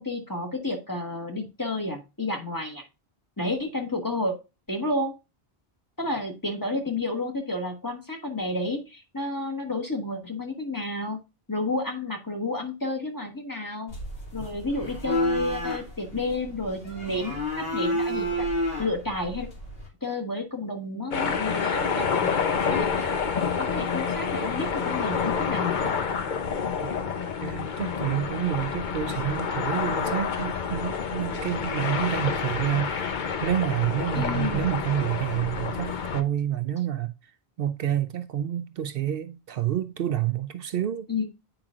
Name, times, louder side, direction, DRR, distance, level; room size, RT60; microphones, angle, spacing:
voice 1, 0.0-2.8 3.4-4.4 4.7-5.2 6.0-11.2 11.5-14.0 14.3-18.5 18.8-19.5 20.0-23.2 23.6-25.9 34.1-34.6 41.1-41.2, left 2 dB, 20° left, 1.4 m, -31 dB
sound 1, 13.9-19.9, equal, 75° left, 2.5 m, -30 dB
sound 2, 21.1-36.2, left 6 dB, 55° left, 0.8 m, -28 dB
voice 2, 27.4-37.1 37.6-41.1, right 11 dB, 70° right, 0.7 m, -28 dB
8.9 x 5.0 x 2.4 m
omnidirectional pair, 1.0 m